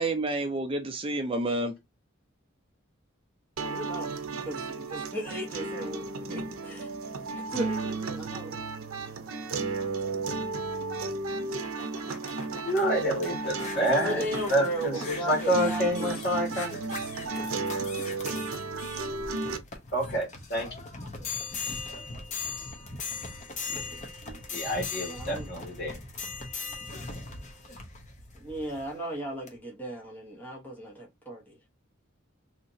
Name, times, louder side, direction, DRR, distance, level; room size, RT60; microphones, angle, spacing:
voice 1, 0.0-1.7 23.7-24.7, right 2 dB, 25° right, 0.5 m, -31 dB
voice 2, 3.6-8.6 13.7-16.2 25.0-25.5 28.3-31.6, right 1 dB, 10° left, 0.9 m, -36 dB
sound 1, 3.6-19.6, right 3 dB, 90° right, 0.6 m, -34 dB
sound 2, 11.3-28.9 29.5-29.6, left 4 dB, 35° left, 0.8 m, -40 dB
voice 3, 12.6-16.7 19.9-20.7 24.5-26.0, equal, 50° left, 2.2 m, -28 dB
3.2 x 2.9 x 2.7 m
head